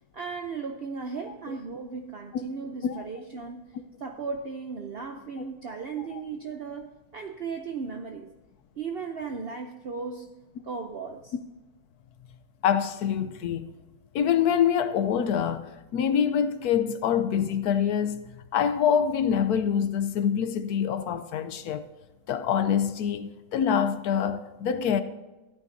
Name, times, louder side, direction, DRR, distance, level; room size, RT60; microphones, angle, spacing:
voice 1, 0.1-3.7 4.0-8.3 8.8-10.3 10.6-11.3, right 5 dB, 50° right, 0.8 m, -36 dB
voice 2, 12.6-13.7 14.1-18.2 18.5-21.9 22.3-25.0, left 8 dB, 85° left, 1.2 m, -25 dB
14.5 x 9.3 x 2.7 m
omnidirectional pair, 1.6 m